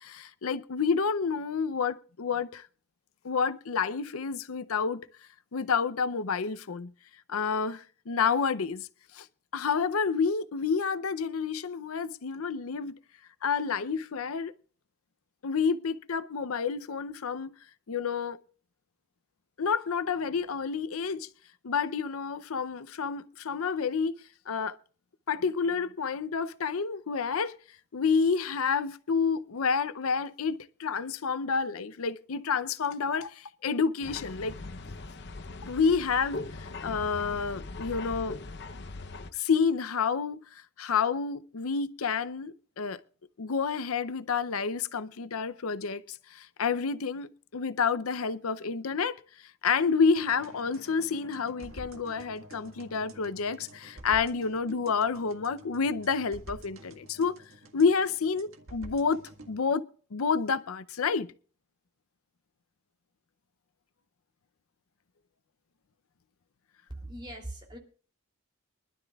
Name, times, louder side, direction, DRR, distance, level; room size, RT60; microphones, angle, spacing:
voice 1, 0.0-2.7 3.2-5.1 5.5-6.9 7.3-8.9 9.1-9.3 9.5-13.0 13.4-14.5 15.4-17.5 17.9-18.4 19.6-21.3 21.6-24.2 24.5-24.8 25.3-27.6 27.9-34.6 35.6-38.4 39.3-43.0 43.4-49.2 49.6-57.4 57.7-61.3, left 5 dB, 85° left, 0.6 m, -29 dB
sound 1, 34.0-39.3, left 3 dB, 50° left, 0.8 m, -40 dB
sound 2, 50.2-59.6, right 1 dB, 75° right, 1.8 m, -49 dB
voice 2, 66.9-67.8, right 1 dB, 20° right, 3.0 m, -40 dB
24.0 x 12.0 x 2.4 m
head